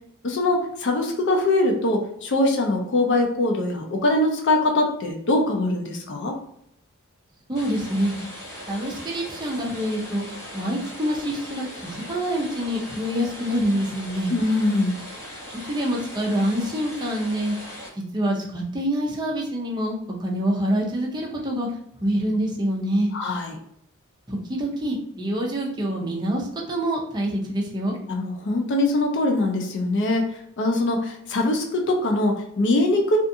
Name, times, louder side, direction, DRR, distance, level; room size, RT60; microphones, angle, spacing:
voice 1, 0.2-6.3 14.3-15.0 23.1-23.5 28.1-30.3 30.6-33.2, left 2 dB, 55° left, 2 dB, 0.5 m, -22 dB
sound 1, 7.5-17.9, equal, 15° left, 0.9 m, -39 dB
voice 2, 7.5-8.1 8.7-14.3 15.6-17.6 18.0-21.7 22.0-23.1 24.3-28.0, equal, 20° right, -2 dB, 0.5 m, -26 dB
2.4 x 2.4 x 2.6 m, 0.71 s
head